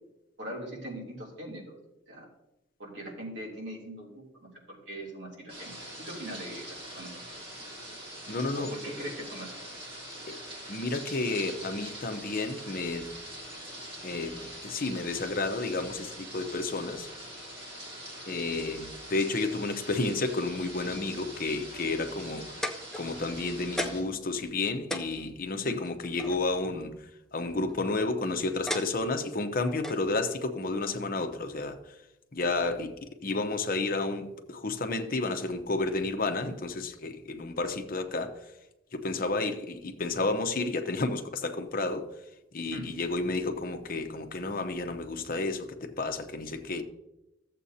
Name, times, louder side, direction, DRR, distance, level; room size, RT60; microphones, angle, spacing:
voice 1, 0.4-1.7 2.1-2.3 2.8-4.2 4.7-5.7 6.0-7.1 8.5-9.6 25.5-25.8 42.7-42.9, right 1 dB, 65° right, 2.9 m, -41 dB
sound 1, 5.5-24.0, right 1 dB, 30° right, 3.4 m, -43 dB
voice 2, 8.3-8.7 10.3-10.4 10.7-13.1 14.0-17.1 18.3-22.5 23.0-26.9 27.3-31.8 32.3-32.9 33.2-38.4 38.9-42.1 42.5-46.8, left 3 dB, 45° left, 0.8 m, -31 dB
sound 2, 22.6-23.4 23.8-24.2 24.5-24.6 24.9-26.4 27.5-27.9 28.7-29.3 29.8-30.0 30.9-31.0, left 1 dB, 5° left, 0.5 m, -35 dB
14.0 x 7.5 x 2.8 m
head